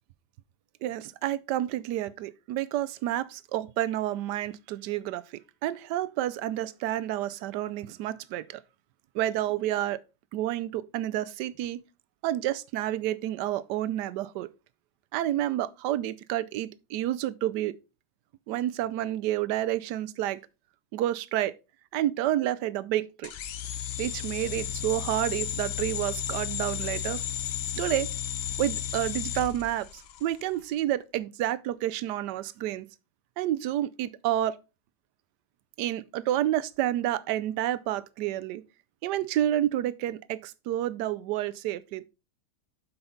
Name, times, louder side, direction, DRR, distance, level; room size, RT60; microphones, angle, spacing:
voice 1, 0.8-8.6 9.1-10.0 10.3-11.8 12.2-14.5 15.1-17.8 18.5-20.4 20.9-21.5 21.9-23.3 24.0-27.2 27.7-28.1 28.6-32.9 33.4-34.6 35.8-38.6 39.0-42.1, right 13 dB, 80° right, 1.2 m, -29 dB
sound 1, 23.2-30.3, left 10 dB, 70° left, 0.6 m, -33 dB
7.8 x 5.8 x 3.9 m
omnidirectional pair, 1.8 m